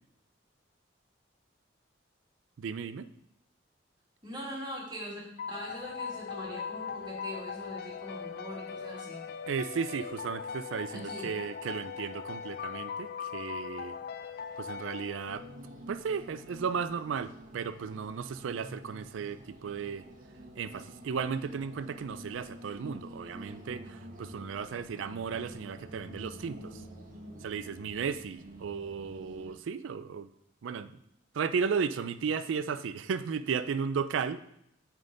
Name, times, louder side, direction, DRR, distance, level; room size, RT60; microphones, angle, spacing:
voice 1, 2.6-3.1 9.5-14.0 14.6-15.5 15.9-20.0 20.6-26.8 27.4-30.3 30.6-30.9 31.3-34.5, right 6 dB, 85° right, 13 dB, 0.4 m, -35 dB
voice 2, 4.2-5.2 5.5-9.2 10.9-11.3, equal, 25° right, -4 dB, 1.9 m, -42 dB
sound 1, 5.4-15.8, left 6 dB, 55° left, 0.4 m, -40 dB
sound 2, 15.3-29.5, right 1 dB, 45° right, 1.0 m, -48 dB
8.9 x 3.7 x 3.8 m, 0.76 s
head